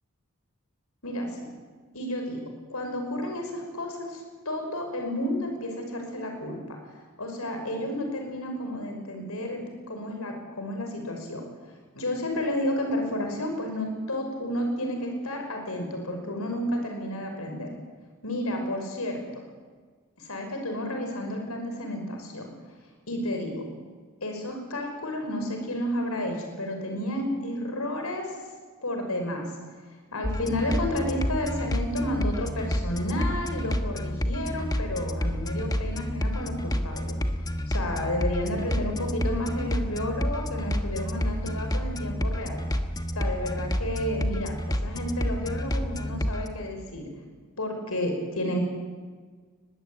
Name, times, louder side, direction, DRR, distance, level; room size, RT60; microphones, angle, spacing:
voice 1, 1.0-1.4 1.9-6.8 7.2-11.4 11.9-17.7 18.2-19.4 20.2-22.5 23.1-23.6 24.2-28.4 28.8-29.5 30.1-37.2 37.7-42.6 43.1-47.1 47.6-48.6, left 1 dB, 85° left, 3 dB, 5.6 m, -31 dB
sound 1, 30.2-46.5, equal, 15° left, 1.2 m, -29 dB
22.5 x 21.0 x 8.7 m, 1.5 s
head